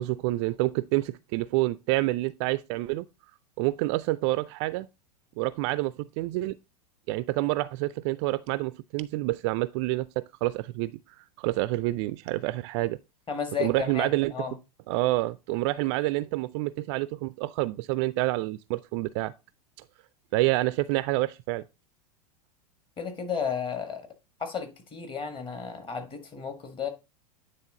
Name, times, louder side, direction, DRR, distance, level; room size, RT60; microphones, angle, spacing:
voice 1, 0.0-3.1 3.6-4.9 5.4-6.6 7.1-11.0 11.4-13.0 13.6-14.3 14.9-19.3 20.3-21.6, right 18 dB, 45° right, 0.4 m, -28 dB
voice 2, 13.3-14.6 23.0-24.1 24.4-26.9, left 6 dB, 25° left, 1.7 m, -33 dB
9.4 x 3.5 x 3.8 m
hypercardioid pair, 95°, 21 cm